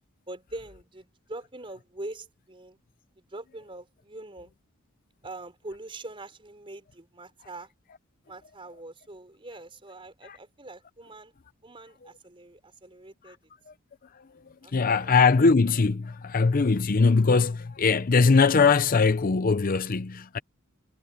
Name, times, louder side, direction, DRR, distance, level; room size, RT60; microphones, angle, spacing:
voice 1, 0.3-2.8 3.2-4.5 5.2-7.7 8.3-11.3 11.6-13.4 14.6-15.1, right 2 dB, 25° right, 4.5 m, -43 dB
voice 2, 14.7-20.4, left 4 dB, 45° left, 0.6 m, -21 dB
head